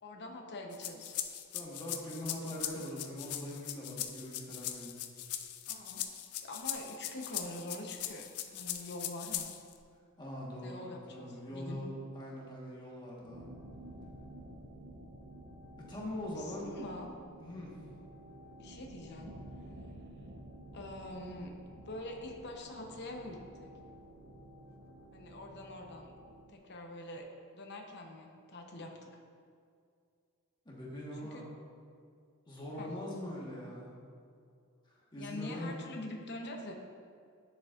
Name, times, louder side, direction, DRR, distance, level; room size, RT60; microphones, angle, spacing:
voice 1, 0.0-1.1 5.7-6.0 6.4-9.5 10.6-11.8 16.2-17.1 18.6-19.3 20.7-21.5 21.9-23.7 25.1-26.1 26.5-27.3 27.5-29.1 31.2-31.4 32.8-32.9 35.2-36.7, left 1 dB, 50° left, 1 dB, 0.8 m, -45 dB
sound 1, 0.7-9.8, left 11 dB, 90° left, 0.5 m, -40 dB
voice 2, 1.5-4.9 10.2-13.5 15.8-16.7 17.4-17.9 30.6-31.4 32.5-33.9 34.9-35.8, left 1 dB, 20° left, -5 dB, 1.3 m, -42 dB
sound 2, 13.2-26.5, right 1 dB, 60° right, 0.7 m, -51 dB
10.0 x 7.0 x 2.5 m, 2.3 s
head